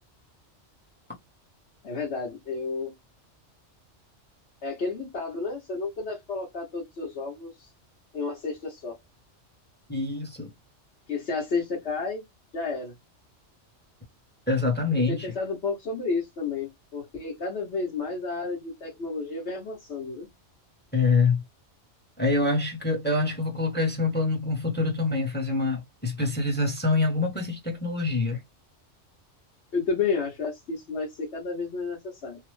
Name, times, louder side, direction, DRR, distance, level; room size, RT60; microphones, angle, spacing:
voice 1, 1.8-2.9 4.6-7.5 8.1-9.0 11.1-12.2 12.5-12.9 15.1-20.3 29.7-32.4, left 4 dB, 65° left, 1.3 m, -31 dB
voice 2, 9.9-10.5 14.5-15.3 20.9-21.4 22.2-28.4, left 3 dB, 10° left, 0.7 m, -25 dB
3.1 x 2.1 x 3.1 m
omnidirectional pair, 1.2 m